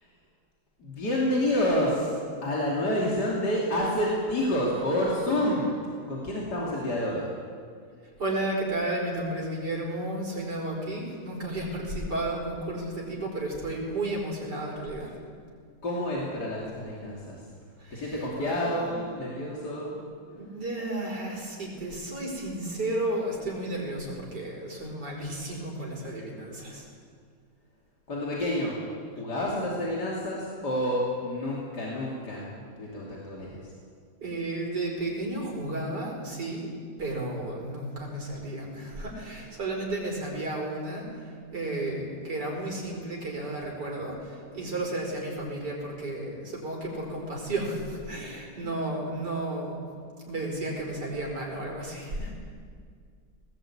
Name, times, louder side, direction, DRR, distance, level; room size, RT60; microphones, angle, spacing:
voice 1, 0.8-2.1 2.4-5.8 6.1-7.3 15.8-17.4 17.9-20.0 28.1-28.8 29.1-32.5 32.8-33.6, left 1 dB, 85° left, -5 dB, 3.6 m, -28 dB
voice 2, 8.2-15.1 17.8-18.9 20.3-26.9 34.2-36.7 37.0-49.9 50.2-52.3, right 1 dB, 85° right, -1 dB, 5.4 m, -33 dB
19.0 x 19.0 x 8.8 m, 2.1 s
omnidirectional pair, 1.7 m